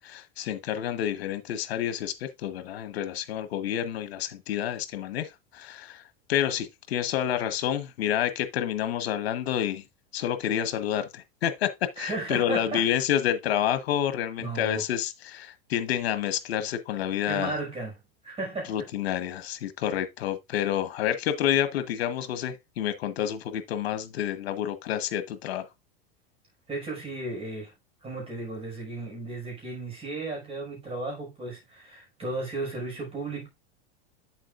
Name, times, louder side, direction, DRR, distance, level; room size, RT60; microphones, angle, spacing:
voice 1, 0.0-6.0 6.3-9.8 10.1-17.6 18.7-25.7, left 10 dB, 85° left, 1.3 m, -29 dB
voice 2, 12.0-12.9 14.4-14.8 17.3-18.0 18.2-18.8 26.7-27.7 28.0-33.5, right 2 dB, 20° right, 5.8 m, -34 dB
8.5 x 7.4 x 2.5 m
supercardioid pair, 135°, 30 cm